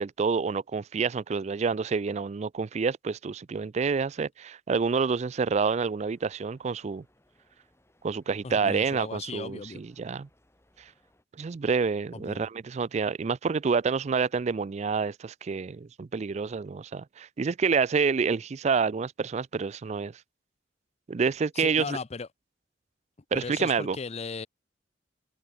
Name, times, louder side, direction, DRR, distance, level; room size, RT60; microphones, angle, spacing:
voice 1, 0.0-7.0 8.0-10.3 11.4-20.1 21.1-22.0 23.3-24.0, right 5 dB, 40° right, 0.4 m, -28 dB
sound 1, 5.8-11.2, left 1 dB, 15° left, 4.5 m, -67 dB
voice 2, 8.4-9.8 12.1-12.4 21.6-22.3 23.3-24.5, left 4 dB, 35° left, 0.6 m, -37 dB
head